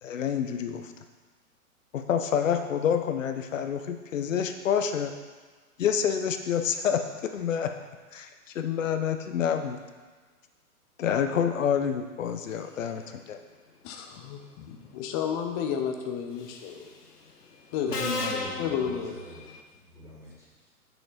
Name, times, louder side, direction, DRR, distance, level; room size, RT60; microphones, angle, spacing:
voice 1, 0.0-0.9 1.9-5.1 5.8-7.7 8.1-8.3 8.5-9.8 11.0-13.4, left 8 dB, 55° left, 7 dB, 1.0 m, -28 dB
voice 2, 13.8-16.9 17.7-18.0 18.6-19.2, left 7 dB, 25° left, 4 dB, 0.8 m, -32 dB
Subway metro underground, 16.4-16.8 17.9-19.6, left 3 dB, 85° left, 1.1 m, -34 dB
voice 3, 17.8-19.5 19.7-20.5, equal, 5° right, -7 dB, 2.4 m, -39 dB
8.5 x 6.9 x 4.0 m, 1.4 s
figure-of-eight pair, 120°, 45 cm